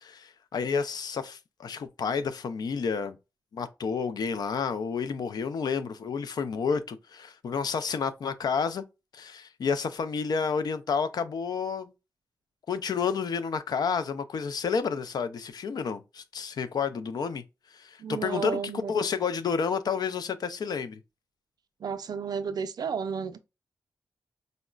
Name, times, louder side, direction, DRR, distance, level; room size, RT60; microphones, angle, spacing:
voice 1, 0.0-3.2 3.5-8.8 9.1-11.9 12.7-17.4 17.7-18.6 18.9-21.0, left 6 dB, 70° left, 0.4 m, -30 dB
voice 2, 18.0-18.9 21.8-23.4, right 6 dB, 65° right, 0.4 m, -32 dB
3.8 x 2.1 x 2.2 m
cardioid pair, 55°, 7 cm